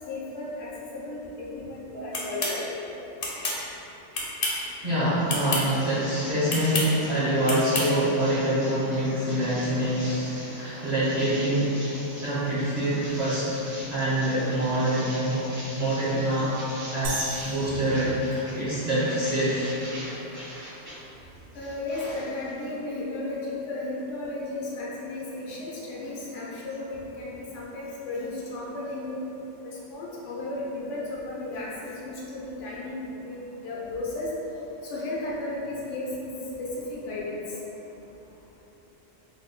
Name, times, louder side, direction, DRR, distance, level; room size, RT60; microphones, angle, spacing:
voice 1, 0.1-2.6 17.4-17.5 18.3-18.4 21.5-29.3 29.6-34.3 34.8-36.3 36.6-37.4, left 2 dB, 85° left, -5 dB, 1.0 m, -34 dB
sound 1, 2.1-2.6 3.2-3.6 4.1-4.6 5.3-5.6 6.5-6.9 7.5-7.9, left 2 dB, 60° left, 0.7 m, -28 dB
voice 2, 4.8-11.7 12.2-13.6 13.9-15.5 15.8-16.6 16.9-19.8, right 1 dB, 45° right, -9 dB, 0.6 m, -25 dB
sound 2, 5.2-20.9 21.4-22.7, equal, 70° right, 1.6 m, -42 dB
sound 3, 17.0-19.0, right 2 dB, 90° right, 0.9 m, -38 dB
3.4 x 2.1 x 3.8 m, 3.0 s
omnidirectional pair, 1.2 m